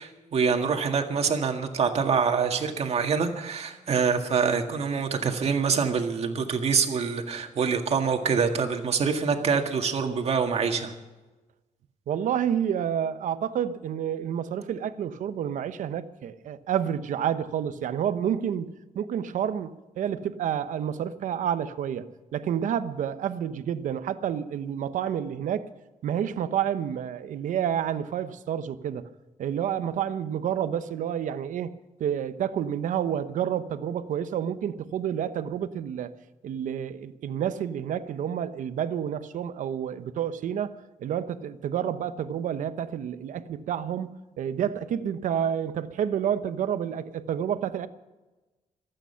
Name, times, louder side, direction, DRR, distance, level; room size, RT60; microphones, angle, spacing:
voice 1, 0.0-10.9, right 5 dB, 55° right, 1.9 m, -25 dB
voice 2, 12.1-25.7 26.0-29.1 29.4-31.7 32.0-36.1 36.4-40.7 41.0-47.9, right 9 dB, 85° right, 0.8 m, -29 dB
25.5 x 9.0 x 5.7 m
cardioid pair, 125°, 13 cm